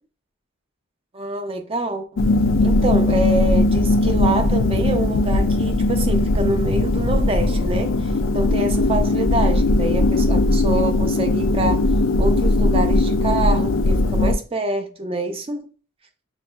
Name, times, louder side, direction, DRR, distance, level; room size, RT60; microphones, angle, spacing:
voice 1, 1.1-2.2 2.6-11.9 12.2-15.7, right 2 dB, 25° right, 0.5 m, -26 dB
sound 1, 2.2-14.3, left 2 dB, 65° left, 0.4 m, -19 dB
6.3 x 2.6 x 2.3 m
head